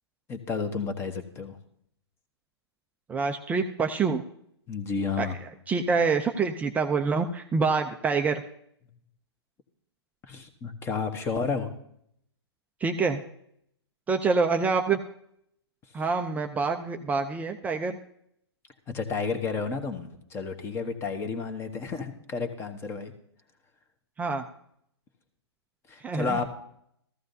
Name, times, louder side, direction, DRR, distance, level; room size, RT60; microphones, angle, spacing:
voice 1, 0.3-1.6 4.7-5.4 10.3-11.7 18.9-23.1 25.9-26.5, left 5 dB, 15° left, 7 dB, 1.3 m, -31 dB
voice 2, 3.1-4.2 5.2-5.3 5.7-8.4 12.8-13.2 14.1-15.0 15.9-18.0 24.2-24.4 26.0-26.4, right 4 dB, 10° right, 5 dB, 0.5 m, -26 dB
14.5 x 14.5 x 2.7 m, 0.70 s
hypercardioid pair, 130°, 14 cm